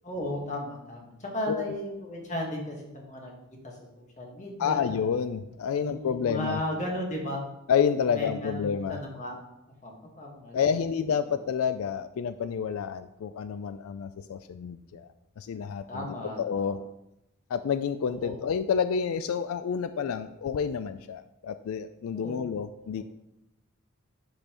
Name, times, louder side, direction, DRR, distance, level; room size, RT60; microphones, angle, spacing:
voice 1, 0.0-3.3 3.6-5.0 5.6-7.4 8.1-9.4 9.8-10.6 15.9-16.7 18.0-18.4 22.1-22.5 22.9-23.0, left 1 dB, 35° left, 0 dB, 1.5 m, -35 dB
voice 2, 4.6-6.6 7.7-9.0 10.5-15.1 15.4-16.8 17.5-23.0, left 7 dB, 70° left, 11 dB, 0.3 m, -29 dB
10.0 x 5.4 x 3.0 m, 0.89 s
head